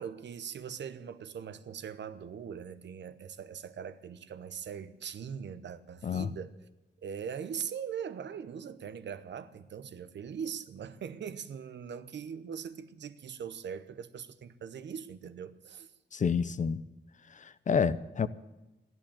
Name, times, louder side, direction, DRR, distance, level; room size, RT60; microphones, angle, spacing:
voice 1, 0.0-6.5 7.0-15.9, right 7 dB, 80° right, 0.9 m, -41 dB
voice 2, 6.0-6.3 16.1-16.8 17.3-18.3, left 6 dB, 45° left, 0.6 m, -29 dB
14.5 x 11.0 x 8.8 m
wide cardioid pair, 150°, 18 cm